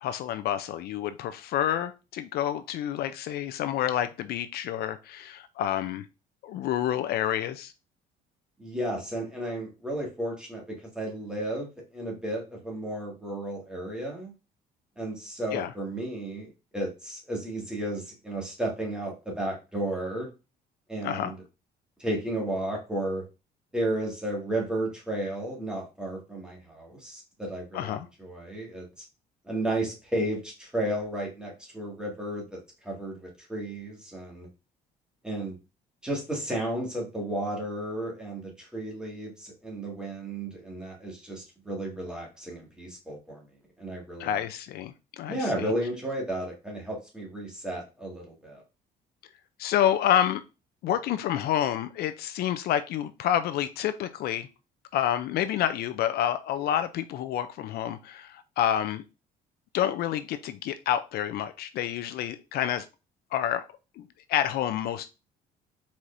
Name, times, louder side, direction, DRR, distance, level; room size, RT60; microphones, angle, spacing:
voice 1, 0.0-6.1 6.4-7.7 15.5-15.7 21.0-21.3 27.7-28.1 44.2-45.7 49.6-50.4 50.8-54.5 54.9-59.0 59.7-62.9 63.3-63.6 64.0-65.1, left 11 dB, 70° left, 11 dB, 0.4 m, -28 dB
voice 2, 8.6-14.3 15.0-20.3 20.9-21.4 22.0-23.2 23.7-27.9 28.2-29.1 29.4-34.5 35.2-35.6 36.0-43.4 43.8-44.4 45.3-48.6, right 1 dB, 5° right, -2 dB, 1.9 m, -33 dB
4.6 x 4.2 x 2.5 m, 0.29 s
cardioid pair, 110°, 17 cm